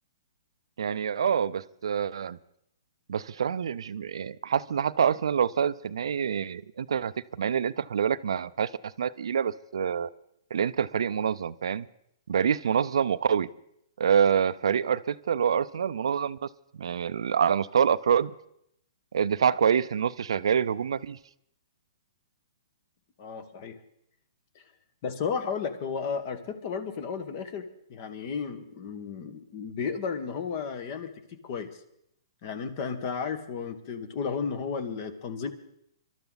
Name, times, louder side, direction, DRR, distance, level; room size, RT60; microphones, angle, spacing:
voice 1, 0.8-2.4 3.1-10.1 10.5-11.9 12.3-13.5 14.0-16.5 16.8-18.3 19.1-21.2, right 7 dB, 80° right, 15 dB, 0.5 m, -26 dB
voice 2, 23.2-23.8 24.5-24.6 25.0-31.1 31.4-31.8 32.4-35.5, left 6 dB, 40° left, 11 dB, 1.5 m, -33 dB
22.0 x 12.5 x 4.0 m, 0.74 s
hypercardioid pair, 155°, 3 cm